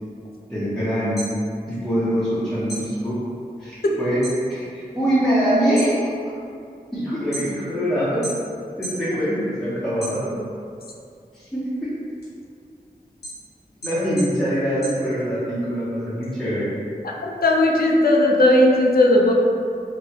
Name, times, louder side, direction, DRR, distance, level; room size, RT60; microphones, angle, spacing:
voice 1, 0.5-1.2 1.7-3.2 3.6-6.1 6.9-8.2 8.8-10.3 11.3-11.9 13.8-16.7, equal, 5° left, -11 dB, 0.7 m, -23 dB
sound 1, 1.2-2.4 2.7-4.4 4.8-5.2 5.6-7.8 8.2-9.1 9.5-10.7 11.1-15.6, right 1 dB, 90° left, 1.0 m, -36 dB
voice 2, 17.2-19.3, left 1 dB, 70° left, -1 dB, 0.4 m, -16 dB
3.1 x 2.6 x 2.8 m, 2.4 s
wide cardioid pair, 70°, 16 cm